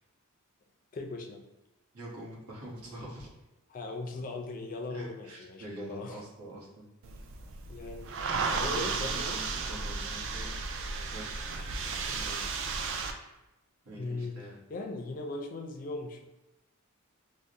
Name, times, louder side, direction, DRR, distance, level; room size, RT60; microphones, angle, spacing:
voice 1, 0.9-1.4 3.7-6.2 7.4-9.4 14.0-16.2, left 2 dB, 40° left, 3 dB, 0.4 m, -39 dB
voice 2, 1.9-3.3 4.9-6.9 8.5-10.5 11.1-12.5 13.8-14.6, right 1 dB, 90° right, -4 dB, 1.0 m, -45 dB
sound 1, 7.0-13.1, right 4 dB, 55° right, 0.3 m, -34 dB
4.6 x 2.1 x 2.6 m, 0.98 s
head